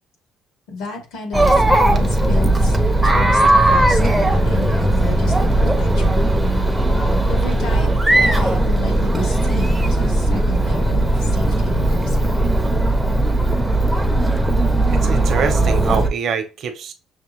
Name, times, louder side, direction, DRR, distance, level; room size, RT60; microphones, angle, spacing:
voice 1, 0.7-2.8 3.0-6.2 7.0-12.4, left 3 dB, 90° left, 2.1 m, -31 dB
Chatter, 1.3-16.1, right 1 dB, 5° right, 0.5 m, -17 dB
voice 2, 14.9-16.9, right 6 dB, 45° right, 0.7 m, -24 dB
6.4 x 2.1 x 3.1 m
cardioid pair, 180°, 0 cm